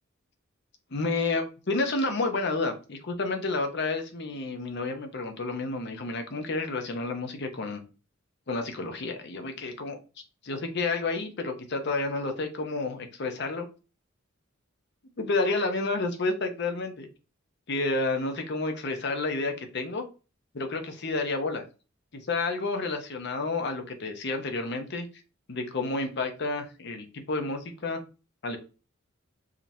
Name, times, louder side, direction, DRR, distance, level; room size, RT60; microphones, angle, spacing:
voice 1, 0.9-7.8 8.5-10.0 10.4-13.7 15.2-17.1 17.7-20.0 20.5-21.6 22.1-25.1 25.5-28.0 28.4-28.6, left 3 dB, 60° left, 5 dB, 0.8 m, -30 dB
5.0 x 2.8 x 2.7 m, 0.33 s
head